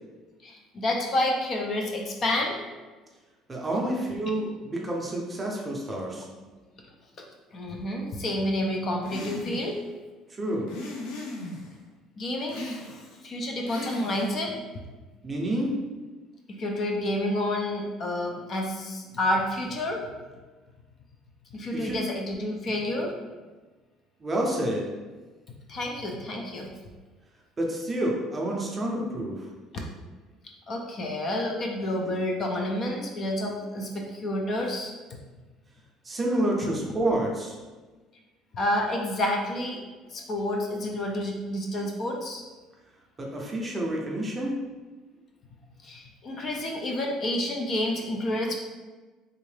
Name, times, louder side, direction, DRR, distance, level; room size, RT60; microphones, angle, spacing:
voice 1, 0.4-2.6 7.5-9.8 12.2-12.6 13.2-14.8 16.5-20.1 21.5-23.1 25.7-26.7 30.7-34.9 38.5-39.8 40.1-42.4 45.8-48.6, left 1 dB, 35° left, 1 dB, 0.5 m, -29 dB
voice 2, 3.5-6.3 10.4-10.7 15.2-15.8 21.7-22.0 24.2-24.9 27.6-29.5 36.0-37.6 43.2-44.6, right 1 dB, 20° right, -2 dB, 0.6 m, -29 dB
sound 1, 9.0-9.8 10.7-11.7 12.5-13.2 13.7-14.4, left 2 dB, 80° left, 0.6 m, -37 dB
3.6 x 2.7 x 3.2 m, 1.3 s
cardioid pair, 135°, 0 cm